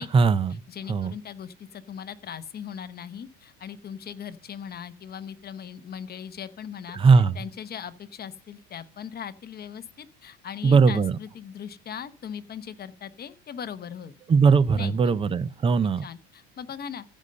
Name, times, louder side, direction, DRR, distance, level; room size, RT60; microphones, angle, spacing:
voice 1, 0.1-0.6 0.9-1.1 6.9-7.4 10.6-11.2 14.3-16.0, right 5 dB, 15° right, 0.4 m, -19 dB
voice 2, 0.7-14.1 14.7-15.1 16.0-17.0, left 8 dB, 25° left, 0.9 m, -39 dB
15.0 x 5.4 x 6.5 m
supercardioid pair, 130°, 37 cm